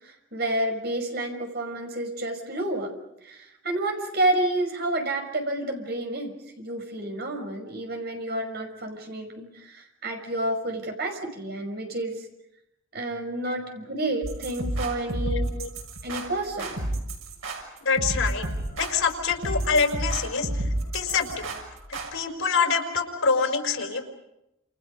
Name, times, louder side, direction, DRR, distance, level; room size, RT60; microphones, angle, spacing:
voice 1, 0.0-2.9 3.2-12.2 12.9-15.5 16.0-16.8, right 1 dB, 50° right, 4 dB, 5.7 m, -30 dB
sound 1, 14.2-22.1, right 1 dB, 90° right, 6.6 m, -31 dB
voice 2, 15.2-15.7 17.8-18.4 18.8-20.6 20.9-21.5 22.1-24.1, left 5 dB, 90° left, 4 dB, 4.7 m, -25 dB
29.5 x 28.5 x 5.4 m, 0.86 s
head